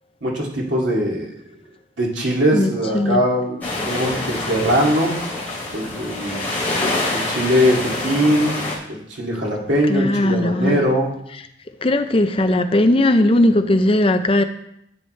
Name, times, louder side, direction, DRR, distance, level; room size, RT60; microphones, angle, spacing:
voice 1, 0.2-1.3 2.0-5.2 5.7-6.5 7.1-8.6 8.9-11.1, equal, 90° right, 2.6 m, -21 dB
voice 2, 2.5-3.2 9.9-10.8 11.8-14.4, left 1 dB, 30° left, 0.5 m, -18 dB
sound 1, 3.6-8.7, left 2 dB, 10° left, 3.1 m, -26 dB
10.5 x 8.6 x 3.3 m
head